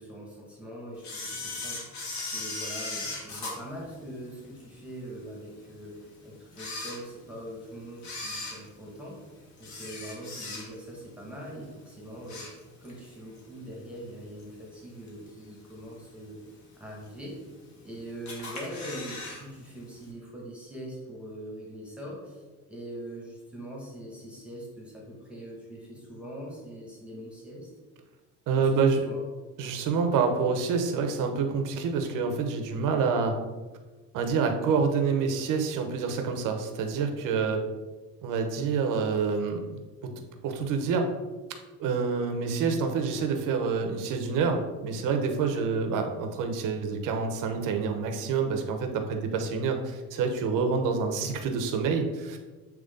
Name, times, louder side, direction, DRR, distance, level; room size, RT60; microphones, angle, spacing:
voice 1, 0.0-9.2 9.6-12.5 12.8-16.4 16.8-17.5 17.8-22.4 22.7-27.7 28.6-28.8 29.1-29.2 45.5-45.6, right 1 dB, 5° right, -4 dB, 1.8 m, -42 dB
Camera, 1.0-4.6 5.1-5.2 5.9-6.0 6.5-7.5 8.0-11.0 11.3-11.6 12.0-13.0 13.4-13.5 14.4-14.5 15.1-15.5 15.9-16.0 16.2-16.3 16.4-16.5 17.3-17.8 18.3-19.4 19.7-19.8 20.0-20.1, left 3 dB, 55° left, 1.8 m, -38 dB
voice 2, 28.5-29.1 29.6-33.4 34.1-37.6 38.2-39.8 40.4-41.1 41.8-52.4, right 5 dB, 70° right, 5 dB, 1.0 m, -27 dB
8.1 x 3.2 x 3.8 m, 1.3 s
cardioid pair, 115°, 33 cm